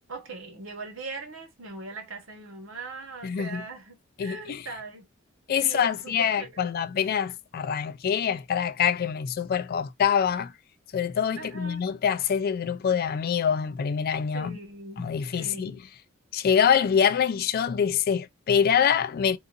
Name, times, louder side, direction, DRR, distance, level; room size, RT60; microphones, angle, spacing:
voice 1, 0.1-5.1 5.6-6.7 11.4-11.8 14.3-15.1 15.4-15.8, right 3 dB, 70° right, 1.2 m, -40 dB
voice 2, 3.2-3.6 4.2-4.7 5.5-10.5 10.9-14.6 15.0-15.7 16.3-19.4, left 7 dB, 50° left, 0.3 m, -25 dB
3.8 x 2.5 x 2.4 m
head